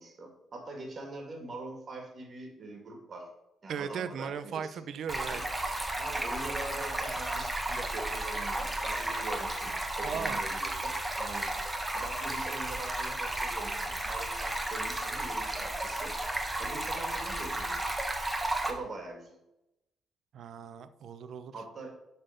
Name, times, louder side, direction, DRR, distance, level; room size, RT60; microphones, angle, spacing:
voice 1, 0.0-3.3 3.6-4.8 5.3-5.5 6.0-11.5 11.9-16.2 16.6-17.8 18.6-19.4 21.5-21.9, right 2 dB, 45° right, 2 dB, 2.3 m, -43 dB
voice 2, 3.7-5.4 10.0-10.4 20.3-21.5, right 7 dB, 65° right, 12 dB, 0.7 m, -37 dB
Stream, 5.1-18.7, right 1 dB, 10° right, 1.4 m, -33 dB
11.5 x 4.4 x 5.2 m, 0.90 s
cardioid pair, 90°, 0 cm